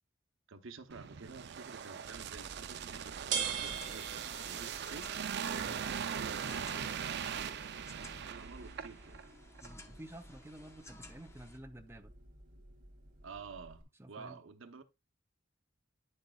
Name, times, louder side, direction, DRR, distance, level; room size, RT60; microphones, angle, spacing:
voice 1, 0.5-5.6 6.1-7.6 7.9-9.3 13.2-14.8, right 4 dB, 80° right, 0.9 m, -51 dB
sound 1, 0.9-9.2 9.6-9.7, right 8 dB, 60° right, 0.5 m, -40 dB
sound 2, 2.3-13.8, right 6 dB, 45° right, 1.7 m, -45 dB
sound 3, 3.3-11.6, left 2 dB, 15° left, 0.9 m, -57 dB
voice 2, 5.5-6.0 6.4-7.1 9.6-12.1 14.0-14.4, right 1 dB, 15° right, 0.6 m, -51 dB
9.7 x 6.4 x 2.3 m
head